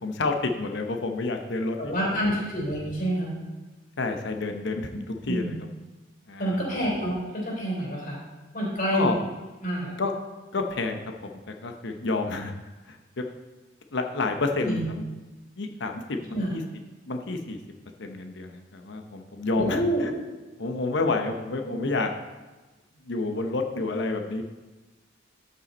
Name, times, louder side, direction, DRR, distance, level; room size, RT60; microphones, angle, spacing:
voice 1, 0.0-2.4 4.0-5.6 6.3-6.9 8.9-9.2 10.0-10.1 10.5-11.0 11.3-12.5 12.9-13.0 13.9-15.0 15.6-16.6 17.1-17.6 18.0-20.1 20.6-22.1 23.0-24.4, left 3 dB, 65° left, 5 dB, 0.8 m, -29 dB
voice 2, 1.8-3.3 5.3-5.5 6.4-8.2 8.5-9.1 9.6-9.9 14.7-14.9 16.3-16.5 19.6-20.1 21.6-21.7, equal, 50° left, -3 dB, 3.5 m, -27 dB
13.0 x 5.6 x 4.2 m, 1.2 s
head